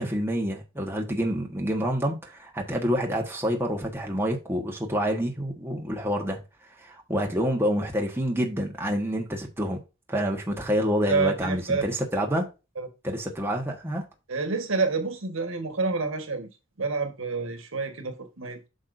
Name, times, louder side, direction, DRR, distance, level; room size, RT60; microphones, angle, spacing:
voice 1, 0.0-6.4 6.8-9.8 10.1-12.5 13.0-14.0, equal, 10° right, 1.3 m, -27 dB
voice 2, 11.0-11.9 12.7-12.9 14.3-16.5 16.8-18.7, right 4 dB, 70° right, 1.5 m, -28 dB
8.1 x 6.4 x 2.6 m
head